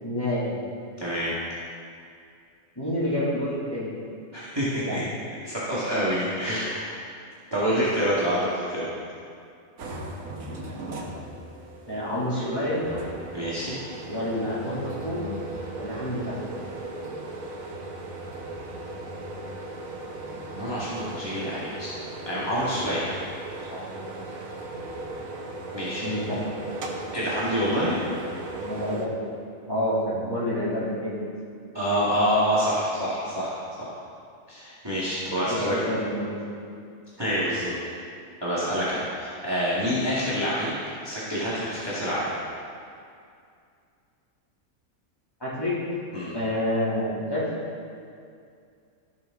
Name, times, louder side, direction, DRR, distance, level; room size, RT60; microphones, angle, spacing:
voice 1, 0.0-0.5 2.8-3.9 4.7-5.0 10.4-11.2 11.9-12.8 14.1-15.3 15.8-16.3 23.7-23.8 25.7-26.4 28.6-29.2 29.7-31.2 35.2-36.4 45.4-45.8 46.3-47.4, left 1 dB, 15° left, -10 dB, 2.9 m, -29 dB
voice 2, 1.0-1.3 4.3-5.0 5.4-7.0 7.5-8.8 13.3-13.8 20.6-21.9 22.2-23.0 25.7-26.1 27.1-28.0 31.7-33.9 34.5-35.9 37.2-37.7 38.4-42.3 46.1-46.3, equal, 20° right, -9 dB, 1.8 m, -27 dB
sound 1, 9.8-29.1, right 2 dB, 75° right, 1.4 m, -37 dB
15.0 x 6.3 x 3.8 m, 2.4 s
omnidirectional pair, 1.4 m